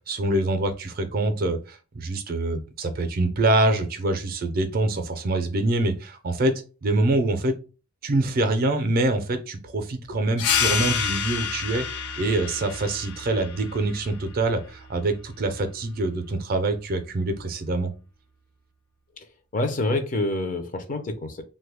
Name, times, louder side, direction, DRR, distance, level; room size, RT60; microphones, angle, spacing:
voice 1, 0.1-6.5 6.8-7.5 8.0-17.9, right 2 dB, 40° right, 8 dB, 0.4 m, -25 dB
sound 1, 10.4-15.5, left 7 dB, 85° left, 0.5 m, -29 dB
voice 2, 19.5-21.4, left 2 dB, 35° left, 6 dB, 0.5 m, -27 dB
3.1 x 2.2 x 3.4 m, 0.33 s
head